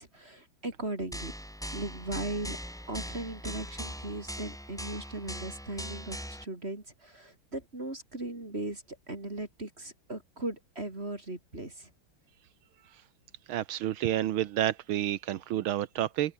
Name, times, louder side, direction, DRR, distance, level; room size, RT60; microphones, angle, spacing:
voice 1, 0.0-1.3 1.7-2.6 2.9-11.9, right 2 dB, 30° right, 4.3 m, -38 dB
sound 1, 1.1-6.4, equal, ahead, 3.6 m, -40 dB
voice 2, 13.5-16.3, right 12 dB, 85° right, 1.8 m, -30 dB
open air
omnidirectional pair, 2.2 m